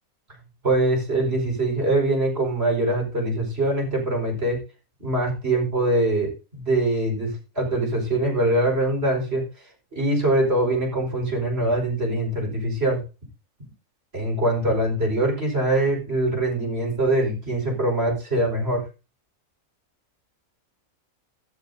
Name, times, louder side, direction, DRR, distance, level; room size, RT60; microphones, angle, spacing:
voice 1, 0.6-4.6 5.0-9.4 9.9-13.0 14.1-18.8, right 1 dB, 45° right, 1 dB, 5.4 m, -23 dB
16.5 x 12.5 x 2.8 m, 0.31 s
omnidirectional pair, 1.5 m